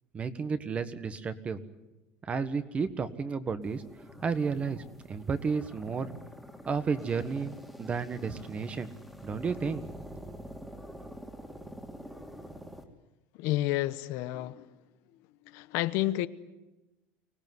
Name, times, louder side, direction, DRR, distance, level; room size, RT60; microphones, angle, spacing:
voice 1, 0.1-1.6 2.2-3.8 4.2-6.1 6.7-8.9 9.2-9.9 10.2-10.4, right 5 dB, 25° right, 1.4 m, -32 dB
sound 1, 3.6-12.8, equal, 5° right, 2.6 m, -46 dB
voice 2, 13.4-14.7 15.5-16.3, left 16 dB, 65° left, 1.0 m, -30 dB
25.0 x 17.5 x 9.5 m
cardioid pair, 140°, 5 cm